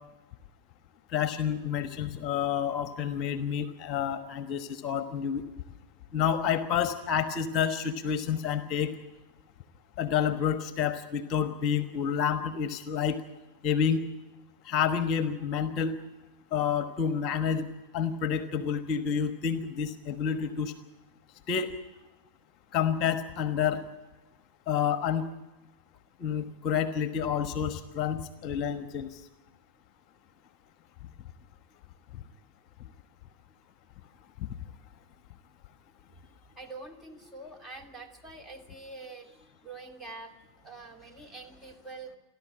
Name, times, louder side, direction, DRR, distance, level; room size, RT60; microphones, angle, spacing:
voice 1, 1.1-5.4 6.1-8.9 10.0-13.2 13.6-14.0 14.6-15.9 16.5-17.7 17.9-20.7 21.5-21.7 22.7-23.8 24.7-25.3 26.2-29.1 34.4-34.5, left 8 dB, 35° left, 11 dB, 1.2 m, -29 dB
voice 2, 36.1-42.2, right 3 dB, 10° right, 3 dB, 2.5 m, -46 dB
29.5 x 12.0 x 8.6 m, 1.1 s
figure-of-eight pair, 90°, 0 cm